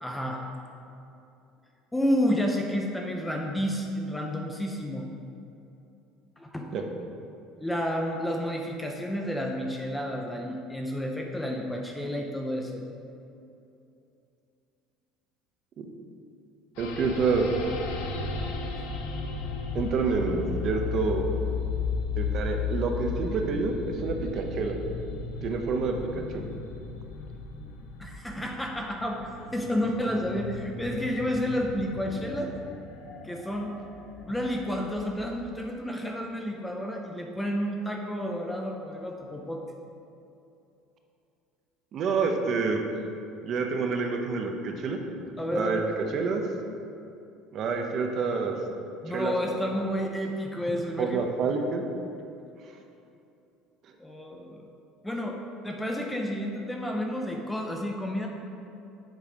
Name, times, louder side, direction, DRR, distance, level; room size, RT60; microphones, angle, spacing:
voice 1, 0.0-0.4 1.9-5.1 6.4-6.7 7.6-12.8 18.8-18.9 28.0-32.5 33.2-33.7 34.2-39.6 45.4-46.0 49.0-51.3 54.0-54.6 55.0-55.4 55.6-58.3, equal, 5° left, 1 dB, 0.5 m, -30 dB
sound 1, 16.8-35.4, left 5 dB, 80° left, 0.9 m, -35 dB
voice 2, 16.8-17.5 19.7-21.2 22.2-24.8 25.4-26.4 41.9-42.8 43.4-45.0 45.5-45.8 46.1-46.4 47.5-48.6 49.1-49.7 51.0-51.8, right 4 dB, 35° right, 3 dB, 0.7 m, -28 dB
7.4 x 4.6 x 5.2 m, 2.7 s
cardioid pair, 165°, 0 cm